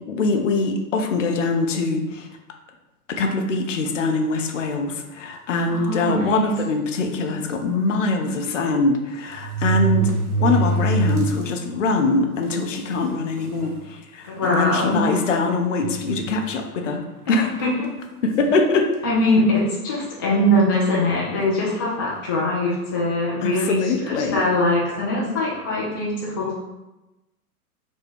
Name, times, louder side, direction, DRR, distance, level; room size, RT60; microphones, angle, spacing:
voice 1, 0.1-2.3 3.1-10.1 10.4-17.0 17.3-17.5 18.2-18.9 23.4-24.4, left 3 dB, 55° left, 3 dB, 0.7 m, -23 dB
voice 2, 5.7-6.5 14.3-15.0 17.3-17.9 19.0-26.5, left 1 dB, 15° left, -6 dB, 0.3 m, -22 dB
sound 1, 5.7-5.9 6.7-6.8 7.1-7.2 8.5-8.6 9.3-11.5 12.0-12.1 12.9-13.0 13.4-13.8 14.4-14.5 15.8-16.6 17.6-17.9, right 4 dB, 65° right, 0.8 m, -24 dB
4.3 x 2.2 x 4.5 m, 1.0 s
figure-of-eight pair, 105°, 46 cm